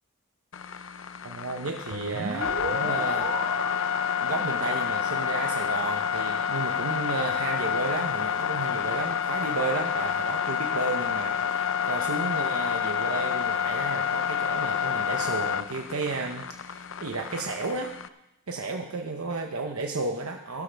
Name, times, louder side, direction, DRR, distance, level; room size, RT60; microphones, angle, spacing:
sound 1, 0.5-18.1, left 8 dB, 60° left, 0.5 m, -29 dB
voice 1, 1.2-3.3 4.2-17.9 18.5-20.6, right 3 dB, 80° right, 3 dB, 0.8 m, -33 dB
sound 2, 1.9-7.6, right 3 dB, 60° right, 1.3 m, -37 dB
15.5 x 13.0 x 3.4 m, 0.94 s
head